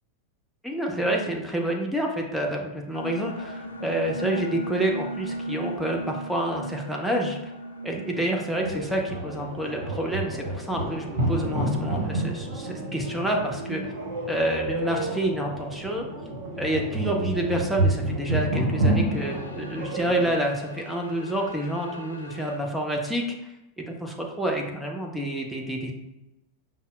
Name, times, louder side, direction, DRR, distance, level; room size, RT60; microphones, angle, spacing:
voice 1, 0.6-7.5 7.8-13.9 14.3-16.1 16.6-23.2 23.8-25.9, right 1 dB, 5° right, 0 dB, 0.5 m, -28 dB
sound 1, 2.9-12.6 12.9-13.0 18.9-22.6, right 1 dB, 80° left, 0.4 m, -39 dB
sound 2, 8.6-20.3, right 1 dB, 60° right, 0.9 m, -29 dB
5.3 x 2.0 x 2.3 m, 0.94 s
figure-of-eight pair, 90°, 0 cm